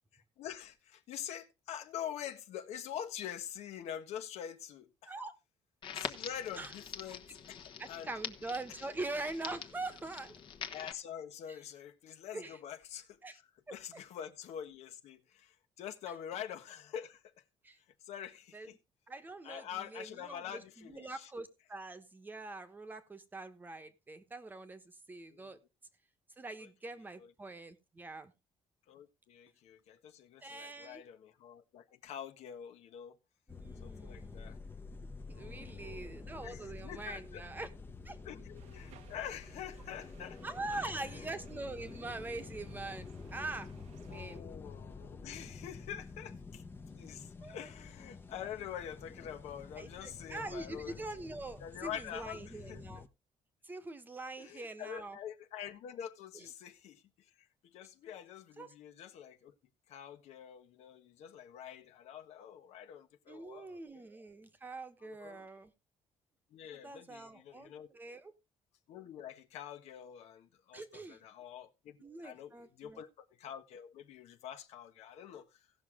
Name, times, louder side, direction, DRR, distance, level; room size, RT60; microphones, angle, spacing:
voice 1, 0.1-5.1 5.9-8.1 10.7-13.4 13.7-17.3 18.0-18.8 19.4-21.3 25.3-25.5 27.2-27.3 28.9-33.2 33.8-34.6 35.3-36.1 36.4-37.4 38.2-40.4 40.8-40.9 44.1-51.0 51.6-53.0 54.4-57.0 57.4-59.5 59.9-64.1 65.0-65.5 66.5-67.9 68.9-75.6, left 9 dB, 75° left, 1.4 m, -46 dB
Crackle, 5.8-10.9, left 8 dB, 45° left, 1.3 m, -45 dB
voice 2, 7.8-10.3 11.5-11.6 12.3-12.6 13.2-13.4 13.7-14.0 17.6-17.8 18.5-18.7 19.1-25.6 26.4-28.3 30.4-31.0 33.5-34.6 35.3-37.7 38.0-38.2 40.4-43.7 44.1-44.4 47.4-47.7 49.8-53.0 53.6-55.2 56.3-56.5 58.6-58.7 63.3-65.7 66.7-68.3 70.7-71.2 72.0-73.0, right 2 dB, 15° right, 1.2 m, -44 dB
sound 1, 33.5-53.1, left 4 dB, 20° left, 0.9 m, -49 dB
sound 2, 38.5-44.4, right 10 dB, 90° right, 1.3 m, -61 dB
17.5 x 6.3 x 3.6 m
cardioid pair, 165°, 11 cm